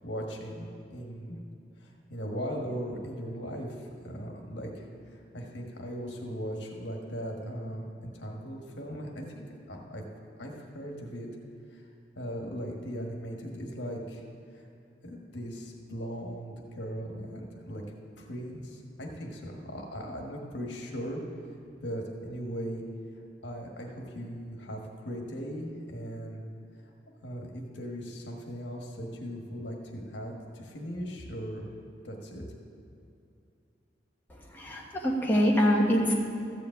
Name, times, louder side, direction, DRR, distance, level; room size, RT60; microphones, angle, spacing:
voice 1, 0.0-1.4 1.8-4.8 5.3-10.0 10.4-11.3 11.7-11.8 12.2-14.2 14.5-14.6 15.0-17.8 18.2-21.2 21.8-22.8 23.4-26.4 27.2-31.7 32.0-32.4, equal, 75° left, 0 dB, 1.5 m, -38 dB
voice 2, 34.3-36.1, equal, 10° left, -3 dB, 1.4 m, -25 dB
13.5 x 5.2 x 8.1 m, 2.6 s
head